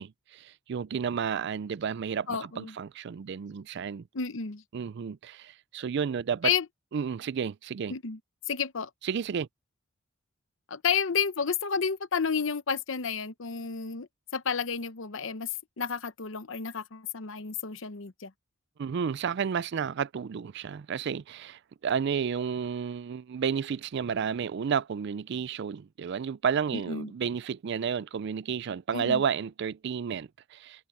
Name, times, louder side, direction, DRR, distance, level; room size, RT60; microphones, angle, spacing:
voice 1, 0.0-4.0 4.7-6.5 6.9-7.9 9.0-9.5 18.8-30.9, right 7 dB, 55° right, 0.3 m, -31 dB
voice 2, 2.3-2.7 4.1-4.6 6.4-6.7 7.9-8.2 8.5-8.9 10.7-15.5 15.8-18.3 26.7-27.1 28.9-29.2, left 6 dB, 65° left, 0.8 m, -31 dB
head